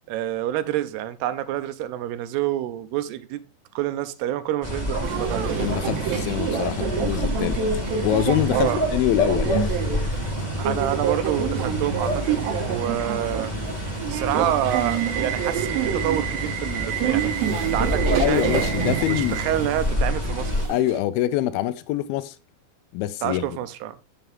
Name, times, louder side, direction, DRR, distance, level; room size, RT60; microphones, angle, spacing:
voice 1, 0.1-3.4 3.8-5.7 8.5-8.8 10.6-13.5 14.1-18.5 19.2-20.7 23.2-24.0, right 12 dB, 90° right, 2.7 m, -28 dB
sound 1, 4.6-20.7, left 1 dB, 25° left, 0.8 m, -28 dB
Subway metro underground, 5.0-21.0, right 8 dB, 70° right, 2.7 m, -28 dB
voice 2, 5.6-7.6 8.0-10.1 18.2-19.4 20.7-22.4 22.9-23.5, left 13 dB, 80° left, 2.3 m, -25 dB
7.4 x 6.8 x 3.5 m
omnidirectional pair, 4.6 m